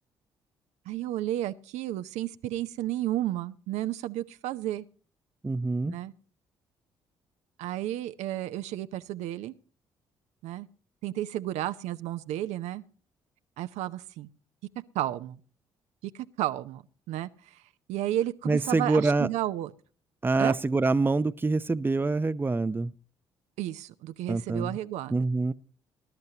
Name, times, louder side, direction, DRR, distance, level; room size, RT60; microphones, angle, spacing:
voice 1, 0.9-4.8 5.8-6.1 7.6-9.5 10.4-10.7 11.0-12.8 13.6-14.3 14.9-15.4 16.4-17.6 17.9-19.7 20.4-20.6 23.6-25.2, right 13 dB, 65° right, 0.7 m, -32 dB
voice 2, 5.4-6.0 18.5-19.3 20.2-22.9 24.3-24.7 25.1-25.5, right 3 dB, 15° right, 0.7 m, -25 dB
20.0 x 11.5 x 2.9 m
hypercardioid pair, 50°, 12 cm